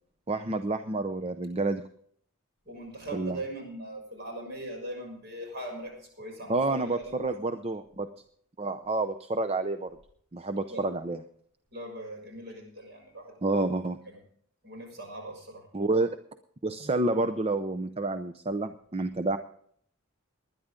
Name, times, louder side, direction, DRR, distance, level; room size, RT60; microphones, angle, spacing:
voice 1, 0.3-1.8 3.1-3.4 6.5-8.1 8.6-10.0 10.3-11.2 13.4-14.0 15.7-16.2 16.6-19.4, right 2 dB, 30° right, 9 dB, 0.6 m, -29 dB
voice 2, 2.6-7.1 10.7-10.8 11.7-13.7 14.0-14.2 14.6-15.6, right 1 dB, 50° right, 1 dB, 6.7 m, -40 dB
20.5 x 11.0 x 3.7 m, 0.62 s
head